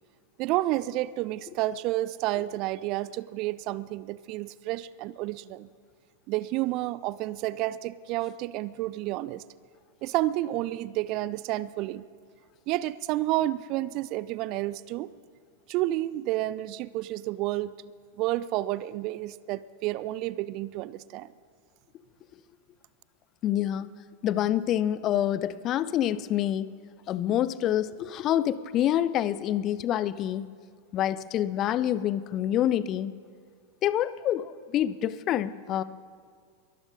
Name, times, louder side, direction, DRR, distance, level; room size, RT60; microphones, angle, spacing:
voice 1, 0.4-5.7 6.3-9.4 10.0-12.0 12.7-15.1 15.7-17.7 18.2-21.3, right 16 dB, 40° right, 19 dB, 0.4 m, -30 dB
voice 2, 23.4-23.9 24.2-26.7 27.1-30.5 30.9-33.1 33.8-35.8, left 11 dB, 35° left, 17 dB, 0.5 m, -27 dB
22.5 x 13.0 x 3.9 m, 2.1 s
figure-of-eight pair, 90°, 0 cm